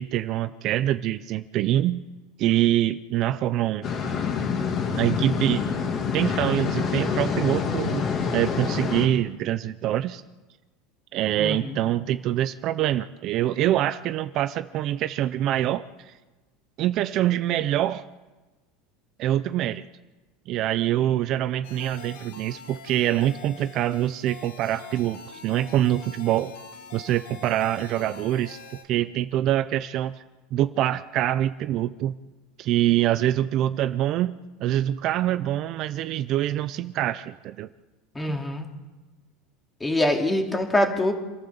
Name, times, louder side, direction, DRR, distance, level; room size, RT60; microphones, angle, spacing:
voice 1, 0.0-2.1 2.4-3.9 5.0-5.7 6.1-8.0 8.3-10.2 11.1-16.1 16.8-18.1 19.2-19.8 20.5-26.5 26.9-28.6 28.9-30.2 30.5-32.2 32.6-37.7 38.3-38.4, right 13 dB, 45° right, 12 dB, 0.7 m, -25 dB
sound 1, 3.8-9.1, left 6 dB, 35° left, 3.0 m, -26 dB
voice 2, 11.4-11.8 38.1-38.7 39.8-41.1, left 1 dB, 10° left, 3 dB, 2.8 m, -24 dB
sound 2, 21.6-28.8, left 4 dB, 85° left, 4.0 m, -44 dB
27.5 x 13.5 x 7.1 m, 1.2 s
supercardioid pair, 135°, 0 cm